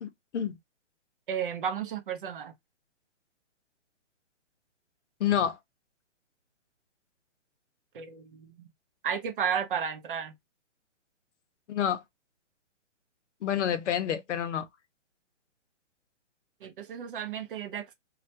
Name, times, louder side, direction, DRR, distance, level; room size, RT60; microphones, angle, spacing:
voice 1, 0.0-0.6 5.2-5.6 11.7-12.0 13.4-14.7, left 9 dB, 70° left, 0.6 m, -28 dB
voice 2, 1.3-2.5 7.9-8.7 9.0-10.3 16.6-17.9, right 7 dB, 45° right, 0.5 m, -33 dB
2.2 x 2.1 x 2.6 m
hypercardioid pair, 150°, 37 cm